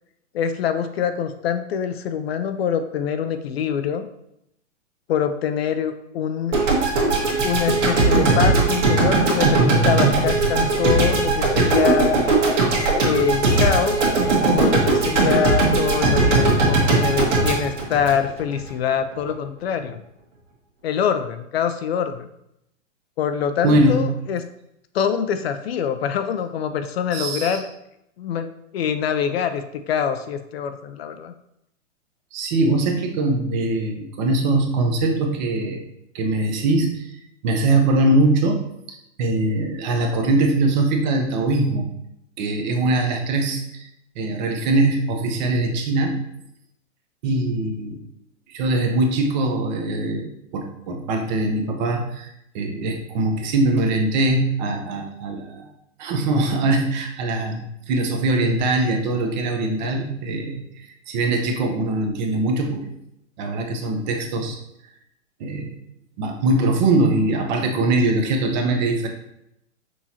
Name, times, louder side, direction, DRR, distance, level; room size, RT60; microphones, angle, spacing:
voice 1, 0.3-4.1 5.1-6.6 7.4-12.2 13.0-14.1 14.5-20.0 20.8-22.3 23.2-24.4 24.9-27.7 28.2-31.3, left 8 dB, 55° left, 9 dB, 0.4 m, -24 dB
sound 1, 6.5-18.7, right 3 dB, 70° right, 1.6 m, -19 dB
voice 2, 23.6-24.1 27.1-27.6 32.3-35.8 36.1-38.6 38.9-41.9 42.4-43.9 44.2-46.2 47.2-48.0 48.5-55.7 56.0-62.9 63.4-64.6 65.4-65.7 66.2-69.1, right 2 dB, 35° right, 3 dB, 0.7 m, -22 dB
6.2 x 3.0 x 2.7 m, 0.79 s
hypercardioid pair, 140°, 38 cm